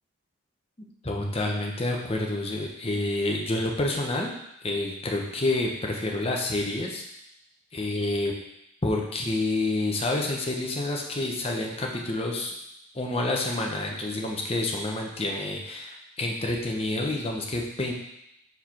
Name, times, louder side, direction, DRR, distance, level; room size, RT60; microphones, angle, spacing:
voice 1, 0.8-4.3 4.6-7.0 7.7-8.3 8.8-12.5 12.9-17.9, left 2 dB, 25° left, 0 dB, 0.9 m, -28 dB
4.7 x 4.7 x 5.7 m, 0.81 s
head